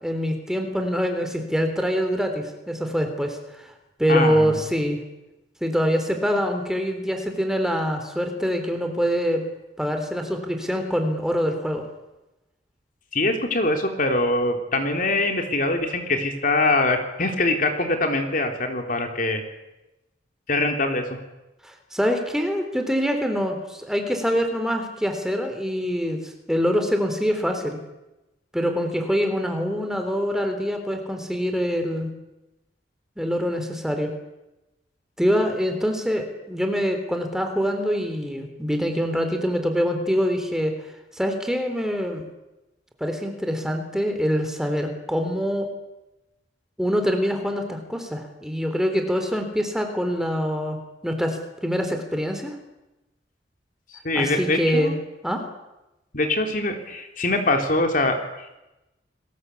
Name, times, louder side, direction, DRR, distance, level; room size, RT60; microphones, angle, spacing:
voice 1, 0.0-3.7 4.0-5.0 5.6-9.4 9.8-11.8 21.6-27.8 28.5-32.1 33.2-34.1 35.2-40.7 41.1-42.2 43.0-45.7 46.8-50.8 51.0-51.4 51.6-52.6 54.2-54.9 55.2-55.4, equal, 5° right, 5 dB, 3.6 m, -24 dB
voice 2, 4.1-4.6 13.1-19.4 20.5-21.2 54.0-54.9 56.1-58.6, left 2 dB, 50° left, 4 dB, 3.7 m, -23 dB
29.5 x 21.0 x 8.5 m, 0.98 s
head